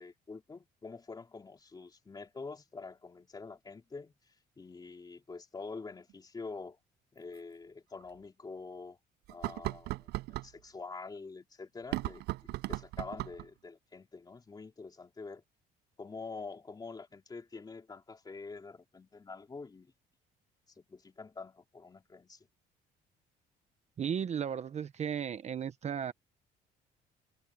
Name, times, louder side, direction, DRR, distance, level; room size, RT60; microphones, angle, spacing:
voice 1, 0.0-4.1 4.6-6.8 7.1-9.0 9.3-15.4 16.0-19.9 20.8-22.5, left 4 dB, 25° left, 3.3 m, -46 dB
sound 1, 6.1-6.2 7.3-7.4 8.0-8.1 9.3-10.5 11.8-13.5, right 18 dB, 90° right, 5.3 m, -37 dB
voice 2, 24.0-26.1, right 8 dB, 40° right, 1.0 m, -35 dB
cardioid pair, 110°, 17 cm